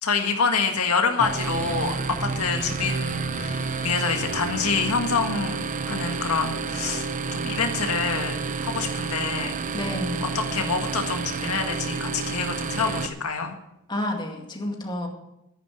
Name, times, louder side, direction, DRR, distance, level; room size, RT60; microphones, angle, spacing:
voice 1, 0.0-9.6 10.3-13.6, left 5 dB, 80° left, 4 dB, 1.7 m, -27 dB
sound 1, 1.2-13.1, right 4 dB, 35° right, 0.8 m, -30 dB
voice 2, 9.7-10.3 13.9-15.1, left 1 dB, 20° left, 1 dB, 2.1 m, -30 dB
10.5 x 10.0 x 8.3 m, 0.86 s
head